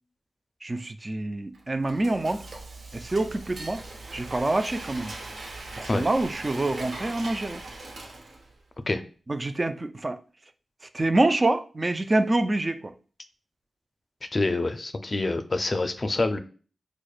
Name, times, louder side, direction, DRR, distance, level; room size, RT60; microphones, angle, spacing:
voice 1, 0.6-2.4 2.9-3.8 4.1-5.1 5.8-7.6 9.3-10.2 10.9-12.9, right 2 dB, 30° right, 0.3 m, -26 dB
Frying (food), 1.5-8.6, right 2 dB, 70° right, 0.8 m, -40 dB
voice 2, 14.3-16.4, left 2 dB, 40° left, 0.4 m, -26 dB
4.7 x 2.1 x 2.3 m
cardioid pair, 50°, 0 cm